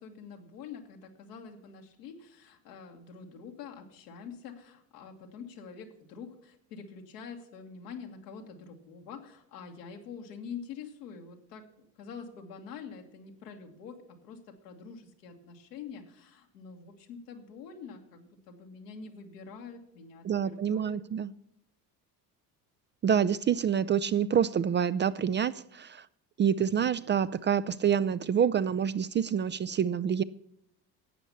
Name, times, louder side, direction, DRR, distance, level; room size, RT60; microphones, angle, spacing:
voice 1, 0.0-21.0, left 6 dB, 90° left, 2 dB, 1.8 m, -46 dB
voice 2, 20.2-21.3 23.0-26.1 26.4-30.2, right 8 dB, 25° right, 15 dB, 0.3 m, -27 dB
12.0 x 8.1 x 6.9 m, 0.77 s
hypercardioid pair, 65°, 47 cm